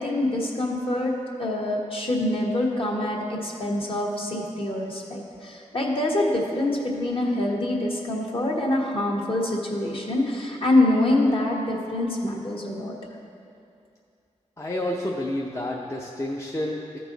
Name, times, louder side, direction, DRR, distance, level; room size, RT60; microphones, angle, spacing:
voice 1, 0.0-12.9, left 1 dB, 45° left, -2 dB, 1.3 m, -25 dB
voice 2, 14.6-17.0, left 1 dB, 25° left, -2 dB, 0.6 m, -29 dB
13.5 x 4.6 x 3.9 m, 2.4 s
wide cardioid pair, 80°, 13 cm